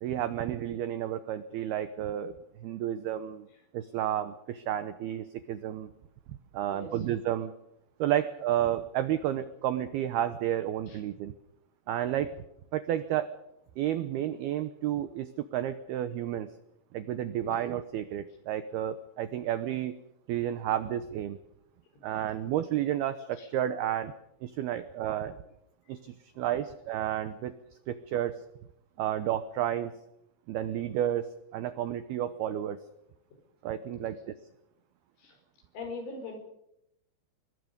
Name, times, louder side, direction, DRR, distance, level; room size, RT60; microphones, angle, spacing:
voice 1, 0.0-2.4 2.6-3.5 3.7-5.9 6.3-7.5 8.0-11.3 11.9-12.4 12.7-13.3 13.8-16.5 16.9-20.0 20.3-21.4 22.0-24.1 24.4-25.4 25.9-27.5 27.9-28.4 29.0-29.9 30.5-32.8 33.6-34.3, right 11 dB, 85° right, 12 dB, 2.2 m, -31 dB
voice 2, 35.8-36.4, left 3 dB, 70° left, 5 dB, 7.2 m, -40 dB
25.0 x 22.0 x 5.3 m, 0.81 s
omnidirectional pair, 5.7 m